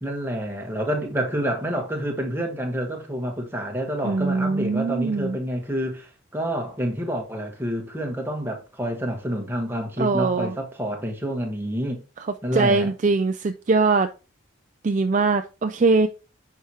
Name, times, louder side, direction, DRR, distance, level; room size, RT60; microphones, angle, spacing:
voice 1, 0.0-12.0 12.4-12.9, equal, 10° right, 1.3 m, -28 dB
voice 2, 4.0-5.4 10.0-10.5 12.5-14.1 14.8-16.1, right 3 dB, 35° right, 0.4 m, -21 dB
10.5 x 4.8 x 2.9 m
head